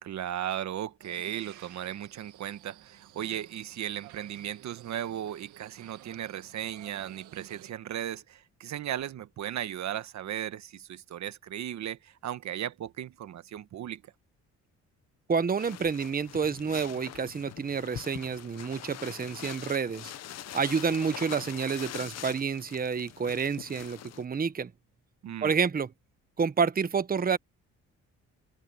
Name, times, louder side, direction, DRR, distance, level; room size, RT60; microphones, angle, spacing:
voice 1, 0.0-14.0 25.2-25.6, right 11 dB, 65° right, 1.2 m, -36 dB
sound 1, 1.0-7.7, right 13 dB, 85° right, 1.9 m, -53 dB
voice 2, 15.3-20.1 20.5-24.7 25.4-25.9 26.4-27.4, right 6 dB, 30° right, 1.1 m, -29 dB
sound 2, 15.6-24.2, left 11 dB, 55° left, 0.8 m, -43 dB
cardioid pair, 90°, 30 cm